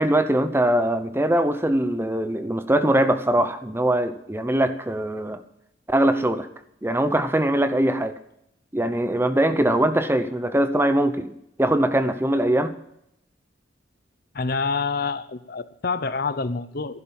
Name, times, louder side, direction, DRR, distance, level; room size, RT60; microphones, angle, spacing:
voice 1, 0.0-5.4 5.9-6.5 6.8-8.1 8.7-11.3 11.6-12.7, right 1 dB, 15° right, 10 dB, 0.8 m, -22 dB
voice 2, 14.3-17.0, left 4 dB, 55° left, 13 dB, 0.8 m, -27 dB
11.5 x 10.5 x 7.2 m, 0.77 s
head